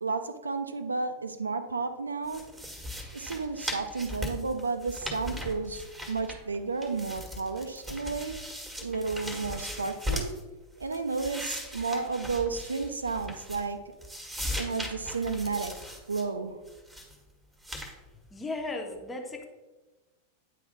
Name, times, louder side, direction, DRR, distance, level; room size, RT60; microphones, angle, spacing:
voice 1, 0.0-2.4 3.1-8.3 8.8-10.3 10.8-13.8 14.6-15.7 16.1-16.6, right 4 dB, 75° right, 9 dB, 0.6 m, -32 dB
sound 1, 2.3-6.6 6.8-10.4 10.8-13.7 14.0-16.2 16.7-17.1 17.6-17.9, left 1 dB, 5° right, 1.5 m, -38 dB
voice 2, 18.3-19.4, left 2 dB, 10° left, 2 dB, 1.2 m, -35 dB
9.4 x 3.4 x 5.1 m, 1.2 s
figure-of-eight pair, 90°, 0 cm